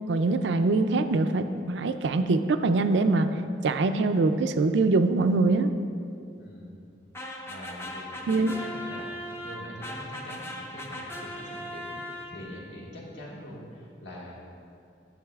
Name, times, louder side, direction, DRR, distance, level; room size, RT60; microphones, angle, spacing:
voice 1, 0.1-3.3 3.6-5.7 8.3-8.5, right 3 dB, 80° right, 9 dB, 0.4 m, -23 dB
voice 2, 6.4-6.8 7.5-9.1 9.4-14.4, equal, 80° left, -5 dB, 1.7 m, -43 dB
sound 1, 7.1-12.7, left 1 dB, 15° left, 0.5 m, -38 dB
10.5 x 7.6 x 2.4 m, 2.6 s
head